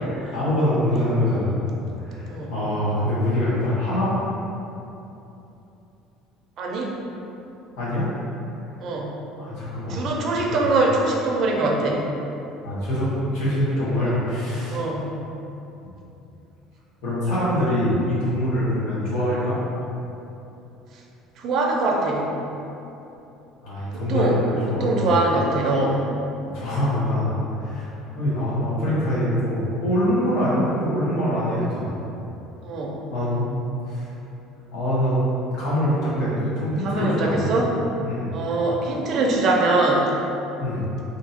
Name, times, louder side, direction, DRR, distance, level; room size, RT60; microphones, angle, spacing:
voice 1, 0.1-1.6 2.0-4.1 7.8-8.1 9.4-10.0 10.5-10.6 12.6-14.8 17.0-19.6 23.6-25.1 26.4-27.3 27.6-32.0 33.1-33.5 33.8-34.1 34.7-35.2 35.6-37.5 38.0-38.3 40.6-40.9, left 1 dB, 65° left, -10 dB, 1.4 m, -24 dB
voice 2, 6.6-6.9 8.8-9.1 9.9-12.0 13.9-14.1 14.7-15.1 21.4-22.3 23.9-26.0 32.6-33.0 36.8-37.7 38.3-40.1, right 2 dB, 40° right, -1 dB, 0.5 m, -23 dB
3.7 x 2.7 x 4.2 m, 2.9 s
cardioid pair, 175°, 0 cm